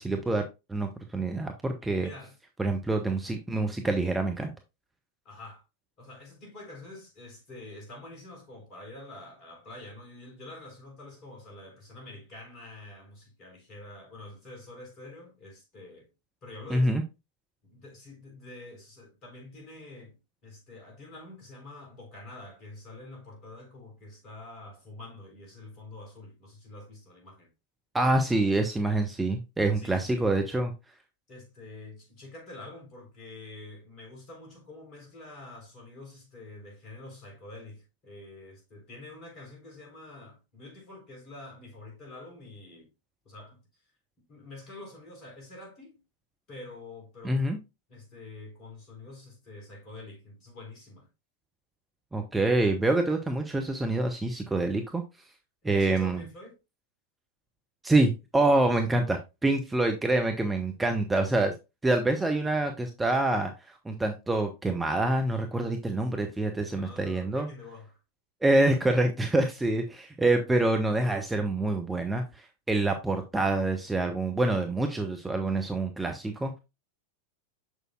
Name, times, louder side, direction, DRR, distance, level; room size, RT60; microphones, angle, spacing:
voice 1, 0.0-2.1 2.6-4.5 16.7-17.0 27.9-30.7 47.2-47.6 52.1-55.0 55.6-56.2 57.8-61.5 61.8-63.5 63.8-67.5 68.4-76.6, right 2 dB, 10° right, 0.7 m, -26 dB
voice 2, 2.0-2.4 5.2-5.6 6.0-16.1 16.4-16.9 17.6-20.2 20.4-27.5 29.7-30.3 31.3-42.9 43.2-43.6 44.3-46.0 46.5-47.4 47.9-51.1 55.6-56.6 66.8-68.0, left 2 dB, 35° left, 3.6 m, -46 dB
6.6 x 6.4 x 2.3 m
figure-of-eight pair, 90°, 0 cm